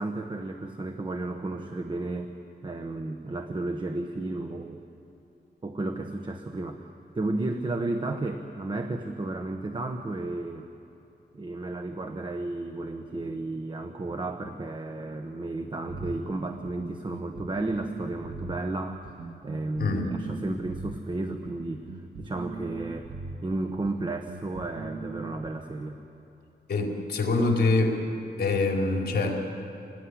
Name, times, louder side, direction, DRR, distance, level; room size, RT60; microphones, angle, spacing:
voice 1, 0.0-2.3 2.6-4.8 5.6-6.9 7.1-10.7 11.3-19.1 19.4-21.9 22.2-23.1 23.4-26.0, right 2 dB, 25° right, 5 dB, 1.2 m, -33 dB
sound 1, 15.9-25.5, right 4 dB, 85° right, 1.6 m, -40 dB
voice 2, 19.8-20.1 26.7-28.0 28.4-29.4, left 3 dB, 60° left, 0 dB, 4.3 m, -25 dB
27.0 x 18.5 x 9.9 m, 2.9 s
wide cardioid pair, 165°, 18 cm